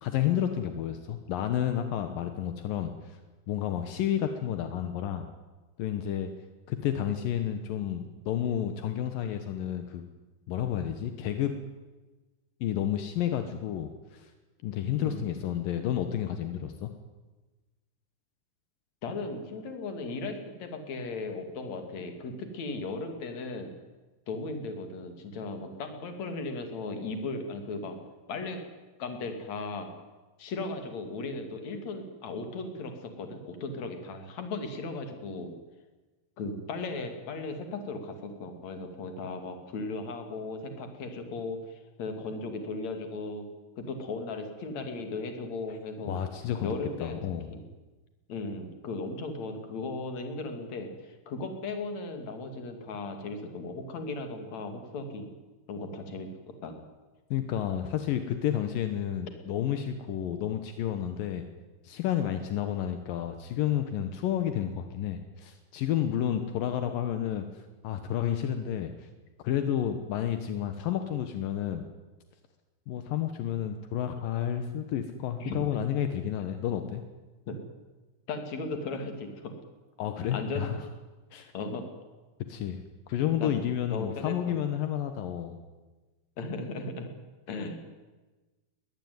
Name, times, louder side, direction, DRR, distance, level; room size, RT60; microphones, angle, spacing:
voice 1, 0.0-3.2 3.5-5.3 5.8-6.3 6.7-10.0 10.5-11.5 12.6-14.3 14.6-16.9 45.7-45.8 46.1-46.7 47.0-47.5 57.3-61.4 61.8-69.1 69.4-71.8 72.9-77.0 80.0-80.8 81.3-81.5 82.5-82.8 83.1-85.6, left 10 dB, 70° left, 8 dB, 2.1 m, -31 dB
voice 2, 19.0-23.7 24.3-28.0 28.3-28.6 29.0-29.9 30.4-35.5 36.4-43.5 43.8-46.2 46.6-47.2 47.5-47.7 48.3-55.3 55.7-56.9 75.4-75.8 77.5-77.6 78.3-79.5 80.3-80.8 81.5-81.9 83.4-83.6 83.9-84.6 86.4-87.1 87.5-87.8, left 3 dB, 45° left, 6 dB, 3.2 m, -36 dB
22.0 x 19.5 x 9.5 m, 1.2 s
omnidirectional pair, 5.6 m